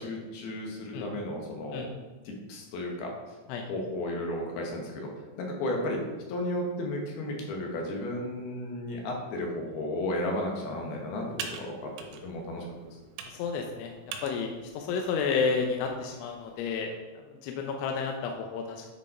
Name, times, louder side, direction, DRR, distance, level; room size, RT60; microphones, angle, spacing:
voice 1, 0.0-1.8 2.3-3.2 3.7-5.1 5.4-6.0 6.3-11.9 12.2-12.9, left 1 dB, 65° left, 0 dB, 2.9 m, -33 dB
Computer keyboard, 10.0-16.7, right 6 dB, 85° right, 3.3 m, -46 dB
voice 2, 13.3-13.9 14.2-18.9, left 5 dB, 85° left, 2 dB, 3.1 m, -31 dB
9.9 x 5.4 x 4.3 m, 1.2 s
omnidirectional pair, 5.4 m